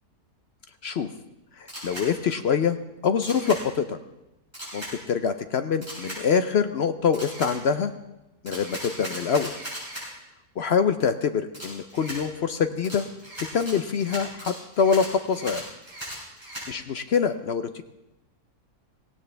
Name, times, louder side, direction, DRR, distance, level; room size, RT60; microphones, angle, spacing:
voice 1, 1.5-2.8 3.0-4.0 4.7-7.9 8.4-9.5 10.6-13.1 13.5-15.7 16.7-17.8, left 6 dB, 60° left, 10 dB, 0.7 m, -25 dB
Camera, 1.7-2.1 3.2-3.6 4.5-4.9 5.8-6.2 7.1-7.5 8.5-10.1 11.5-12.2 12.8-16.7, equal, 15° right, 6.1 m, -37 dB
17.0 x 16.5 x 3.3 m, 0.97 s
omnidirectional pair, 1.6 m